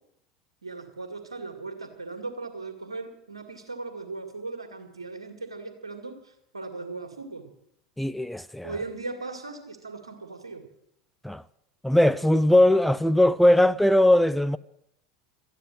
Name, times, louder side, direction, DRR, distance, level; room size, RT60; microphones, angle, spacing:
voice 1, 0.6-7.5 8.6-10.7, right 3 dB, 85° right, 2.1 m, -38 dB
voice 2, 8.0-8.7 11.2-11.4 11.8-14.6, left 1 dB, 5° left, 0.5 m, -20 dB
13.5 x 9.6 x 9.1 m
figure-of-eight pair, 80°, 3 cm